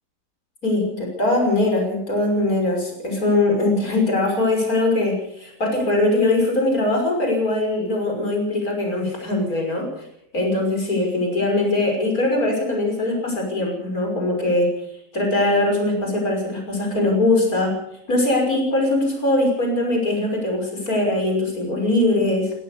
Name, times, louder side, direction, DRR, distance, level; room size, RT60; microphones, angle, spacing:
voice 1, 0.6-10.0 10.3-14.7 15.1-17.7 18.1-22.5, left 2 dB, 60° left, 1 dB, 6.4 m, -21 dB
22.0 x 17.5 x 6.9 m, 0.71 s
omnidirectional pair, 1.7 m